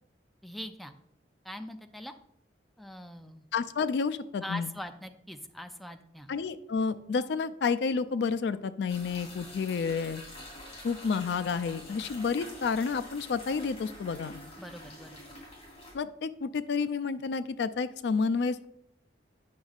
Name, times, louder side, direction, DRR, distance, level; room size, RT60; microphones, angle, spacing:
voice 1, 0.4-0.9 1.4-2.1 2.8-3.5 4.4-6.3 14.6-15.2, left 1 dB, ahead, 6 dB, 0.4 m, -42 dB
voice 2, 3.5-4.7 6.3-10.2 10.8-14.3 15.9-18.7, left 5 dB, 70° left, 13 dB, 0.4 m, -30 dB
sound 1, 8.9-15.9, left 1 dB, 35° left, 2.6 m, -46 dB
9.4 x 6.1 x 2.4 m, 0.75 s
head